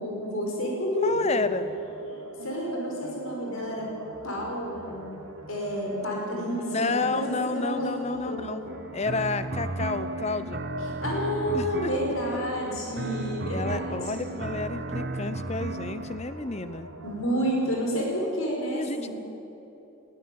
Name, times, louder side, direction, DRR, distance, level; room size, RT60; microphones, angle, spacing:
voice 1, 0.0-1.3 2.4-3.9 4.2-5.0 5.5-8.5 11.0-14.2 17.0-19.1, equal, 75° left, -1 dB, 5.5 m, -30 dB
voice 2, 1.0-1.7 6.7-8.6 8.9-10.6 11.5-11.9 13.5-16.9 18.7-19.1, left 3 dB, 30° left, 12 dB, 0.8 m, -30 dB
sound 1, 1.0-18.0, equal, 80° right, 1.8 m, -43 dB
sound 2, 8.7-16.2, right 2 dB, 45° right, 0.9 m, -34 dB
19.5 x 15.5 x 9.4 m, 3.0 s
head